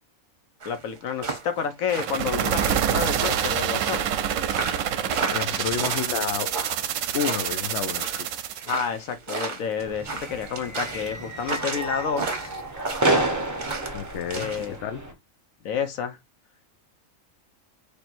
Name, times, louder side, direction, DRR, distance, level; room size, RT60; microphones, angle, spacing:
voice 1, 0.6-4.1 8.7-12.5 14.3-14.8 15.6-16.2, left 7 dB, 85° left, 1.2 m, -30 dB
sound 1, 0.6-14.7, right 4 dB, 40° right, 1.0 m, -33 dB
sound 2, 1.9-8.7, right 10 dB, 75° right, 0.9 m, -27 dB
voice 2, 4.7-6.6 7.1-8.3 13.9-15.2, left 8 dB, 65° left, 0.9 m, -31 dB
sound 3, 9.8-15.1, right 2 dB, 15° right, 0.7 m, -29 dB
4.4 x 3.3 x 2.5 m
omnidirectional pair, 1.4 m